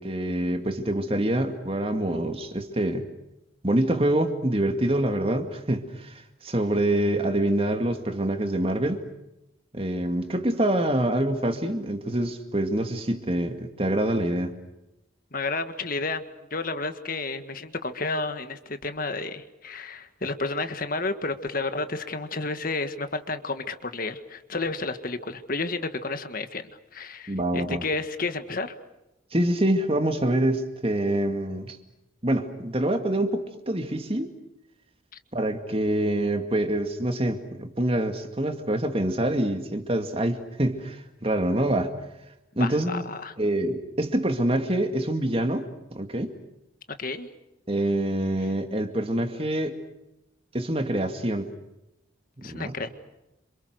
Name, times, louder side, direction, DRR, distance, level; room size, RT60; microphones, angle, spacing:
voice 1, 0.0-3.1 3.6-9.0 9.7-14.5 27.3-27.8 29.3-31.8 32.2-34.3 35.3-41.9 42.6-43.0 43.4-46.3 47.7-49.8 50.5-51.5 52.4-52.7, right 1 dB, 30° right, 7 dB, 2.2 m, -26 dB
voice 2, 15.3-16.2 16.5-26.6 26.9-28.7 42.6-43.3 47.0-47.3 52.4-52.9, left 3 dB, 45° left, 9 dB, 1.7 m, -31 dB
28.0 x 27.0 x 6.6 m, 0.92 s
head